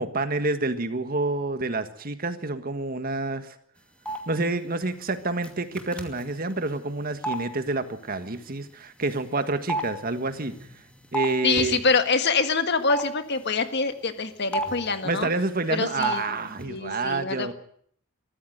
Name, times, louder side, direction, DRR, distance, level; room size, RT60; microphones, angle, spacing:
voice 1, 0.0-3.5 4.3-10.5 11.1-11.8 15.0-17.5, right 3 dB, 45° right, 9 dB, 1.6 m, -28 dB
sound 1, 4.0-4.2 5.4-5.5 5.8-6.2 7.2-7.4 9.1-9.2 9.7-11.3 11.6-11.7 12.9-13.0 14.5-14.9 16.0-16.2 16.5-16.6, right 2 dB, 5° left, 2.6 m, -29 dB
voice 2, 11.4-15.3 15.7-16.2 16.6-17.5, left 4 dB, 55° left, 9 dB, 1.7 m, -25 dB
23.0 x 14.5 x 8.0 m, 0.63 s
head